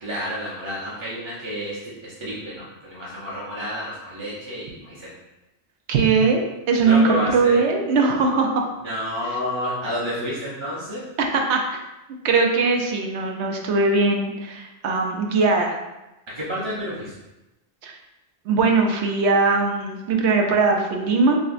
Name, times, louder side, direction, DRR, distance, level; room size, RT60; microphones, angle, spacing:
voice 1, 0.0-5.1 6.8-7.6 8.8-11.0 16.4-17.1, equal, 30° right, -8 dB, 0.7 m, -30 dB
voice 2, 5.9-8.6 11.2-11.8 12.2-15.8 17.8-17.9 18.5-21.4, right 4 dB, 80° right, 2 dB, 0.9 m, -20 dB
6.1 x 2.1 x 2.5 m, 0.98 s
omnidirectional pair, 1.1 m